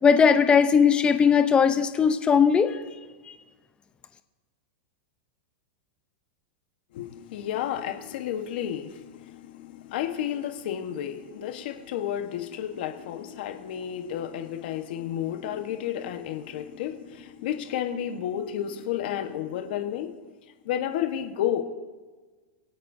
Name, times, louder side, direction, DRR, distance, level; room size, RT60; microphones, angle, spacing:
voice 1, 0.0-2.8, left 6 dB, 15° left, 9 dB, 0.7 m, -19 dB
voice 2, 6.9-20.1 20.6-21.6, left 10 dB, 65° left, 6 dB, 1.3 m, -31 dB
25.0 x 8.5 x 2.7 m, 1.3 s
supercardioid pair, 140°, 6 cm